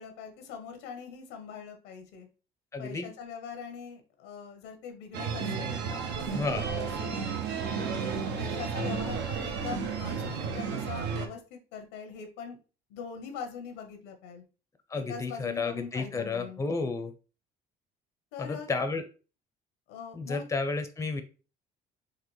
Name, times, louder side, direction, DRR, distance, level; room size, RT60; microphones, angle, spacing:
voice 1, 0.0-2.3 2.8-7.2 7.8-8.0 8.4-12.6 12.9-14.4 14.9-16.6 18.3-18.7 19.9-20.5, left 6 dB, 90° left, 5 dB, 0.8 m, -42 dB
voice 2, 2.7-3.1 6.3-6.7 14.9-17.1 18.4-19.0 20.1-21.2, left 4 dB, 15° left, 8 dB, 0.5 m, -32 dB
sound 1, 5.1-11.3, right 6 dB, 70° right, 0.7 m, -32 dB
4.0 x 2.5 x 3.1 m, 0.35 s
supercardioid pair, 85°, 19 cm